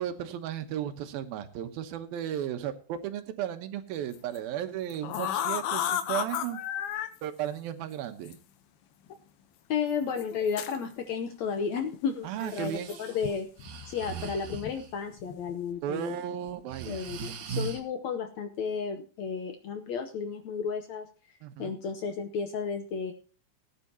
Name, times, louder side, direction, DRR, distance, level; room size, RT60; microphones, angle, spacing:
voice 1, 0.0-6.6 7.2-8.4 12.2-12.9 15.8-17.0 21.4-21.7, right 10 dB, 85° right, 8 dB, 2.9 m, -35 dB
sound 1, 4.1-4.4 4.9-7.1 8.3-8.4 9.1-9.2 10.2-10.8 12.6-13.3 13.6-13.9 14.5-14.8 15.1-15.5, left 10 dB, 90° left, 2.9 m, -32 dB
voice 2, 9.7-12.7 13.0-13.5 13.9-16.2 16.9-21.1 21.6-23.1, left 6 dB, 70° left, 7 dB, 1.7 m, -33 dB
Breathing, 12.4-14.9 15.7-16.1 16.5-17.8, right 5 dB, 65° right, 2.6 m, -39 dB
19.0 x 9.8 x 2.9 m, 0.38 s
omnidirectional pair, 4.2 m